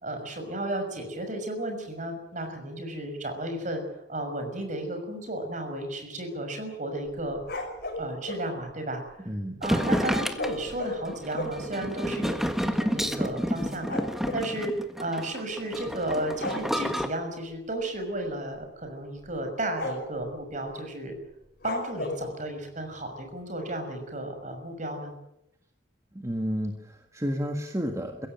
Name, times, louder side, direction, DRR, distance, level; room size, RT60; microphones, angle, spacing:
voice 1, 0.0-3.8 4.1-7.4 8.0-9.3 9.6-12.4 12.6-14.0 14.3-21.1 21.6-25.1, right 1 dB, 45° right, 5 dB, 6.0 m, -33 dB
sound 1, 7.2-8.5 10.3-11.7 12.4-12.5 12.7-12.9 13.2-14.5 15.6-15.9 16.3-16.7 18.0-18.2 18.6-18.7 19.2-19.4 19.8-20.2 21.6-22.3, left 1 dB, 55° left, 5.7 m, -34 dB
voice 2, 9.2-9.6 26.1-28.3, equal, 15° right, 4 dB, 1.7 m, -31 dB
sound 2, 9.6-17.1, equal, ahead, 1.5 m, -29 dB
23.0 x 16.5 x 9.2 m, 0.82 s
head